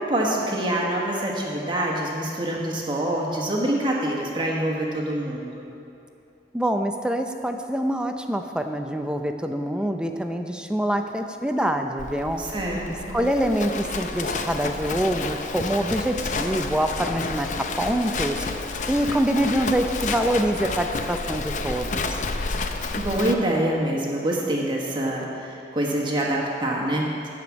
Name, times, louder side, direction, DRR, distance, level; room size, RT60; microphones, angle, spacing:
voice 1, 0.0-5.5 12.4-13.2 23.0-27.3, right 1 dB, 25° right, -2 dB, 1.2 m, -25 dB
voice 2, 6.5-12.4 13.1-18.5 18.9-22.2, right 1 dB, 5° right, 5 dB, 0.5 m, -25 dB
Livestock farm animals working animals, 12.0-23.3, left 3 dB, 40° left, 0.6 m, -30 dB
13.0 x 5.1 x 8.4 m, 2.8 s
head